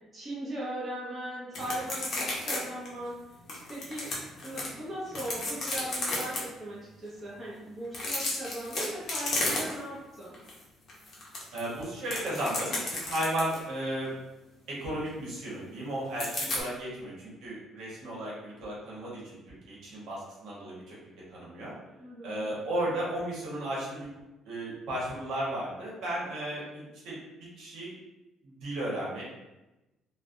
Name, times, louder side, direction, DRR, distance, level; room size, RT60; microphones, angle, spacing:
voice 1, 0.1-3.2 3.7-4.1 4.4-10.4 22.0-22.5, right 1 dB, 20° right, -8 dB, 0.6 m, -38 dB
sound 1, 1.5-2.6 2.9-3.0 3.5-4.7 5.1-6.4 7.8-10.0 10.3-10.5 10.9-13.6 16.2-16.6, left 2 dB, 40° left, 0.7 m, -33 dB
voice 2, 11.5-14.1 14.7-21.0 21.3-21.7 22.2-24.1 24.4-27.2 27.6-27.9 28.4-29.2, right 1 dB, 70° right, -6 dB, 1.2 m, -34 dB
3.2 x 2.2 x 2.5 m, 1.0 s
cardioid pair, 175°, 0 cm